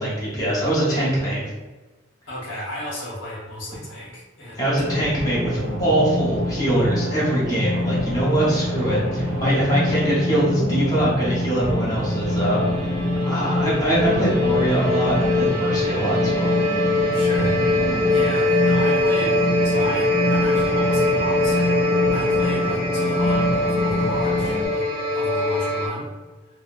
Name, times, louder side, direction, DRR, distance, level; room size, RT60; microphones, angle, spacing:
voice 1, 0.0-1.5 4.6-12.9 13.3-16.5, right 1 dB, 15° left, -7 dB, 0.8 m, -23 dB
voice 2, 2.3-4.7 17.1-17.6 18.1-21.8 22.1-24.9 25.1-26.1, left 1 dB, 65° left, -6 dB, 0.9 m, -33 dB
sound 1, 4.8-24.7, left 1 dB, 70° right, 0.7 m, -25 dB
sound 2, 11.6-25.9, left 2 dB, 45° right, 1.5 m, -23 dB
3.5 x 2.2 x 2.4 m, 1.2 s
head